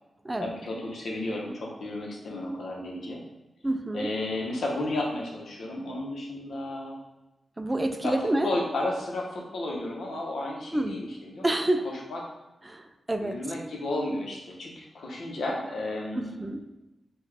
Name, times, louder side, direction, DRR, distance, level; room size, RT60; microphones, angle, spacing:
voice 1, 0.4-3.2 3.9-7.0 8.0-8.1 8.4-11.5 12.1-12.2 13.2-16.4, left 1 dB, 75° left, -1 dB, 0.9 m, -33 dB
voice 2, 3.6-4.1 7.6-8.5 10.7-11.0 11.4-11.9 12.6-13.4 16.2-16.6, right 1 dB, 15° right, 6 dB, 0.3 m, -28 dB
5.3 x 2.3 x 3.4 m, 1.0 s
wide cardioid pair, 105°, 0 cm